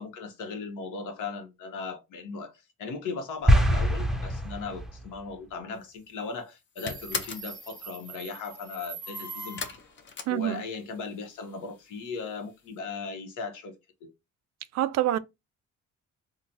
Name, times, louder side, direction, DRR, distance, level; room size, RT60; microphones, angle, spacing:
voice 1, 0.0-9.7 10.3-13.7 14.0-14.1, left 4 dB, 85° left, 0.9 m, -37 dB
sound 1, 3.5-5.1, equal, ahead, 0.5 m, -23 dB
sound 2, 5.8-6.2 6.5-7.5 9.6-11.1 11.3-12.0 12.3-12.4 12.7-12.8, left 5 dB, 40° left, 0.6 m, -37 dB
Subway metro underground, 6.8-9.9, right 3 dB, 65° left, 1.2 m, -42 dB
voice 2, 10.3-10.6 14.7-15.2, right 13 dB, 60° right, 0.4 m, -26 dB
3.8 x 2.1 x 2.7 m
cardioid pair, 90°, 30 cm